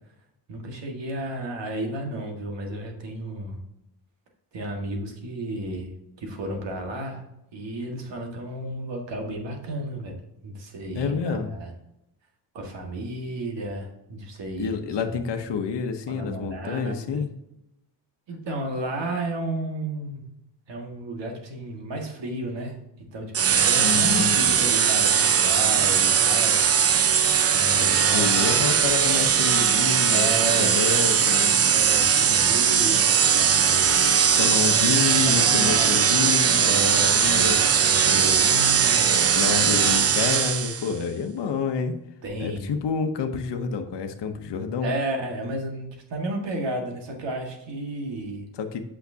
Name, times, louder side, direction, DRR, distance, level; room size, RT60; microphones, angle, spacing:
voice 1, 0.5-3.6 4.5-5.9 6.2-7.2 7.5-10.2 10.4-11.7 12.5-14.7 15.0-15.2 16.1-17.2 18.3-20.2 20.7-22.8 23.1-27.0 27.5-28.6 30.1-30.8 31.5-33.9 34.8-36.1 36.6-39.2 42.2-42.7 44.8-48.5, right 1 dB, 80° right, 1 dB, 1.8 m, -33 dB
voice 2, 10.9-11.5 14.6-17.3 23.8-24.6 27.7-31.6 34.4-37.7 39.3-41.9 42.4-44.9 48.5-48.8, left 6 dB, 75° left, 5 dB, 0.9 m, -28 dB
sound 1, 23.3-40.9, right 7 dB, 35° right, 0.5 m, -20 dB
8.2 x 5.8 x 2.8 m, 0.86 s
wide cardioid pair, 120°, 42 cm